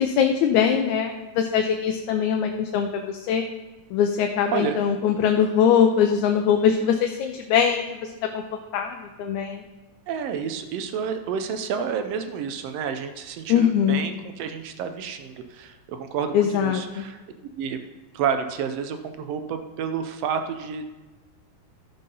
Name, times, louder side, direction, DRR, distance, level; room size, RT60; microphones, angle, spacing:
voice 1, 0.0-3.4 3.9-7.9 8.3-8.4 8.7-9.6 13.5-14.0 16.3-17.1, left 8 dB, 80° left, 4 dB, 2.0 m, -22 dB
voice 2, 10.1-17.2 17.5-17.8 18.1-20.9, right 7 dB, 75° right, 8 dB, 1.5 m, -30 dB
13.0 x 5.5 x 5.4 m, 1.2 s
omnidirectional pair, 3.4 m